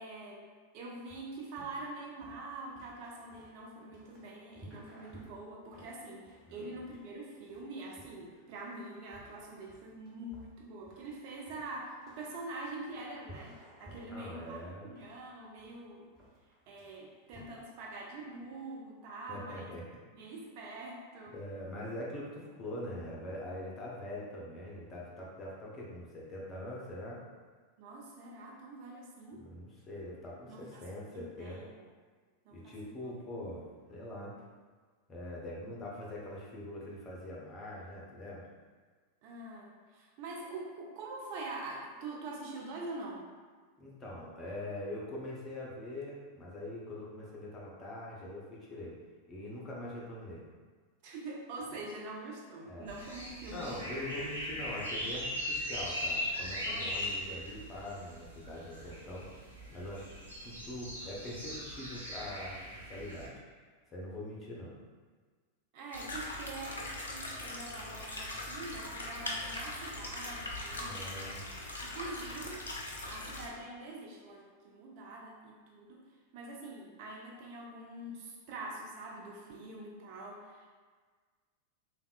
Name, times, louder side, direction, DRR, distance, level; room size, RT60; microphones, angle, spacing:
voice 1, 0.0-14.6 14.8-16.1 16.7-19.7 20.1-21.3 27.8-29.4 30.5-30.8 31.1-31.8 32.4-33.2 39.2-43.3 51.0-53.9 54.2-54.3 56.7-57.1 65.7-71.3 71.7-76.0 76.3-80.7, right 2 dB, 45° right, -2 dB, 0.5 m, -45 dB
sound 1, 1.1-17.4, right 1 dB, 20° right, 0.9 m, -56 dB
voice 2, 14.1-14.9 19.3-20.0 21.3-27.2 29.4-31.6 32.5-33.6 33.9-34.3 35.1-38.4 43.8-49.0 49.3-50.4 52.7-52.9 53.5-59.3 59.7-60.1 60.4-63.4 63.9-64.8 70.8-71.4, left 1 dB, 25° left, -5 dB, 0.7 m, -43 dB
sound 2, 52.9-63.3, equal, 80° right, 0.8 m, -39 dB
sound 3, 65.9-73.5, left 1 dB, 70° left, 0.4 m, -41 dB
3.4 x 2.3 x 2.4 m, 1.5 s
figure-of-eight pair, 90°, 0 cm